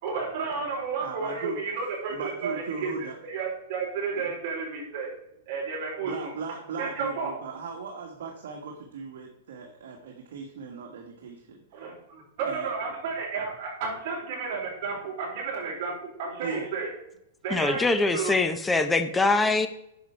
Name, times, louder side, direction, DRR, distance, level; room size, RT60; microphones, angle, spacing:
voice 1, 0.0-2.9 3.2-5.1 5.5-6.3 6.8-7.3 11.7-16.9 17.4-18.3, right 5 dB, 45° right, -3 dB, 4.4 m, -32 dB
voice 2, 1.0-1.6 2.1-3.2 4.1-4.3 6.0-11.8 12.4-12.7 16.4-16.7, right 4 dB, 65° right, 1 dB, 1.7 m, -38 dB
voice 3, 17.5-19.7, left 3 dB, 10° left, 9 dB, 0.7 m, -23 dB
10.0 x 7.0 x 4.6 m, 0.81 s
hypercardioid pair, 155°, 0 cm